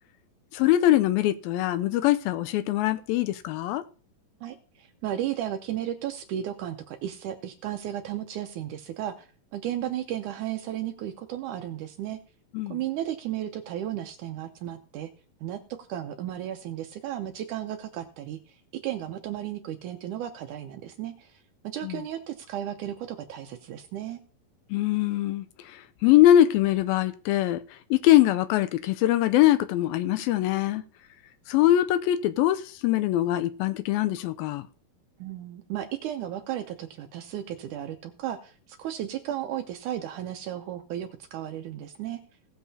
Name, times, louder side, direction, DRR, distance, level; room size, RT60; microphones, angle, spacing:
voice 1, 0.5-3.8 12.5-12.8 21.8-22.0 24.7-25.5 26.0-27.6 27.9-30.8 31.5-34.7, left 13 dB, 85° left, 2.4 m, -22 dB
voice 2, 4.4-9.3 9.5-12.2 12.7-15.1 15.4-15.6 15.9-18.4 18.8-21.3 21.6-24.2 35.2-42.2, right 11 dB, 75° right, 1.9 m, -34 dB
18.0 x 7.4 x 2.8 m
omnidirectional pair, 4.2 m